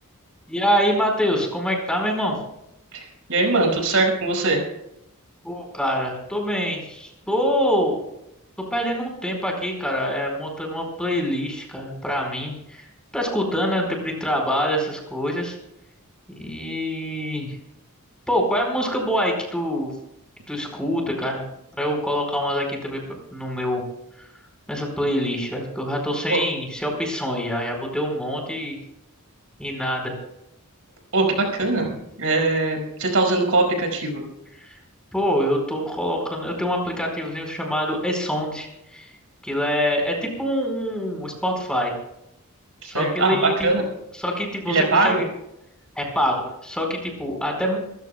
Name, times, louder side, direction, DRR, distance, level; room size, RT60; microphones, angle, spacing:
voice 1, 0.5-2.4 5.4-8.0 8.7-12.9 13.1-15.6 16.3-17.6 18.3-19.9 20.5-21.4 21.8-23.0 23.3-23.8 24.7-28.8 29.6-30.1 34.6-34.8 35.1-39.1 39.4-41.9 42.8-43.5 44.2-45.3 45.9-47.8, equal, 5° left, 1 dB, 4.7 m, -25 dB
voice 2, 2.9-4.6 26.3-26.4 31.1-34.2 42.8-43.8 44.7-45.2, right 2 dB, 70° right, 2 dB, 5.6 m, -21 dB
27.5 x 15.0 x 2.3 m, 0.82 s
head